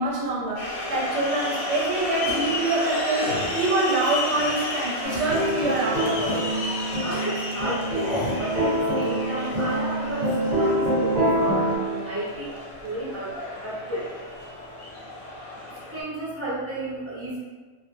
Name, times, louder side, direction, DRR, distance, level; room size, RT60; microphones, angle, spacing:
voice 1, 0.0-6.4, right 2 dB, 70° right, -4 dB, 0.9 m, -26 dB
sound 1, 0.6-16.0, left 2 dB, 80° left, 0.9 m, -33 dB
sound 2, 2.2-2.6 3.1-3.5 4.0-4.6 5.1-5.4 6.2-6.5 7.1-7.3 7.9-8.4, left 1 dB, 55° left, 0.8 m, -33 dB
sound 3, 5.0-11.8, right 1 dB, 40° right, 1.1 m, -25 dB
voice 2, 7.0-11.5 11.8-12.6 12.8-13.3 13.6-14.0 14.4-14.5 15.9-17.4, right 1 dB, 20° right, -10 dB, 0.4 m, -33 dB
2.4 x 2.1 x 3.1 m, 1.4 s
omnidirectional pair, 1.3 m